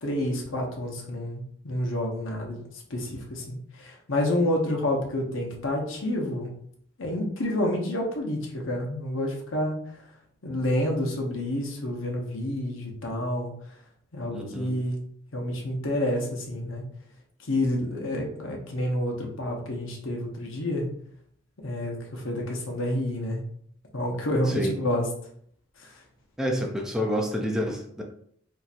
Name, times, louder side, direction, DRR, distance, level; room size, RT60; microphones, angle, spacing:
voice 1, 0.0-2.6 2.9-6.5 7.0-9.8 10.4-13.5 14.1-15.0 15.3-16.8 17.5-20.9 21.6-23.4 23.9-25.1, left 1 dB, 80° left, 1 dB, 1.0 m, -29 dB
voice 2, 14.3-14.8 24.5-24.8 26.4-28.0, equal, 5° right, 0 dB, 0.5 m, -28 dB
4.2 x 2.8 x 2.5 m, 0.64 s
head